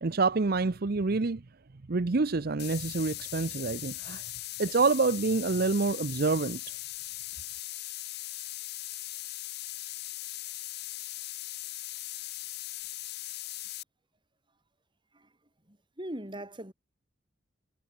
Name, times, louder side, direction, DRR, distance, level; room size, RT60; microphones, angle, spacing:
voice 1, 0.0-1.4 1.9-4.2 4.6-6.6, right 3 dB, 50° right, 0.7 m, -27 dB
sound 1, 2.6-13.8, left 16 dB, 55° left, 0.9 m, -39 dB
voice 2, 15.7-16.7, right 1 dB, 25° right, 5.5 m, -40 dB
head